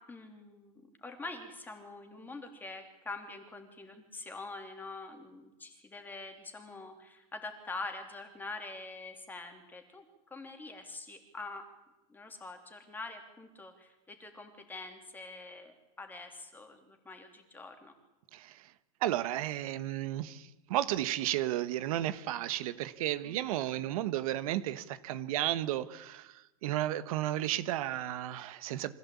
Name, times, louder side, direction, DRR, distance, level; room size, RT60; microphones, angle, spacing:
voice 1, 0.0-11.7 12.1-17.9 23.2-23.6, left 3 dB, 10° left, 5 dB, 3.1 m, -45 dB
voice 2, 18.3-18.6 19.0-28.9, right 13 dB, 70° right, 14 dB, 1.3 m, -33 dB
24.5 x 16.0 x 8.6 m, 1.0 s
supercardioid pair, 155°, 19 cm